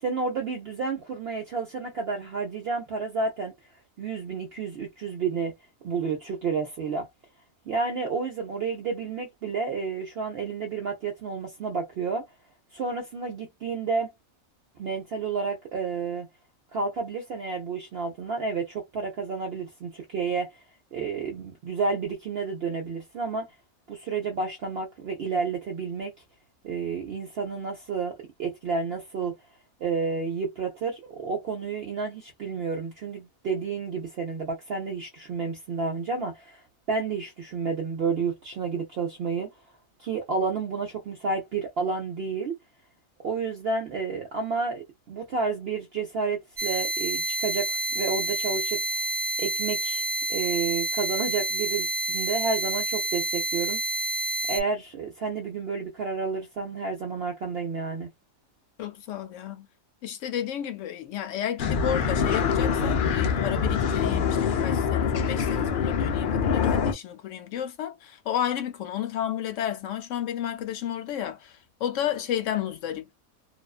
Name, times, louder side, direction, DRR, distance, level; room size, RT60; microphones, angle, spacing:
voice 1, 0.0-3.5 4.0-5.6 5.8-7.1 7.7-12.3 12.7-14.1 14.8-16.3 16.7-20.5 20.9-23.5 23.9-26.1 26.6-29.4 29.8-36.6 36.9-39.5 40.0-42.6 43.2-49.0 49.4-50.0 50.3-53.8 54.5-58.1, right 4 dB, 60° right, 0.7 m, -30 dB
sound 1, 46.6-54.6, right 1 dB, 40° right, 0.3 m, -29 dB
voice 2, 58.8-59.7 60.0-73.1, left 10 dB, 70° left, 0.8 m, -32 dB
sound 2, 61.6-66.9, left 6 dB, 85° left, 0.4 m, -25 dB
2.4 x 2.3 x 2.3 m
omnidirectional pair, 1.5 m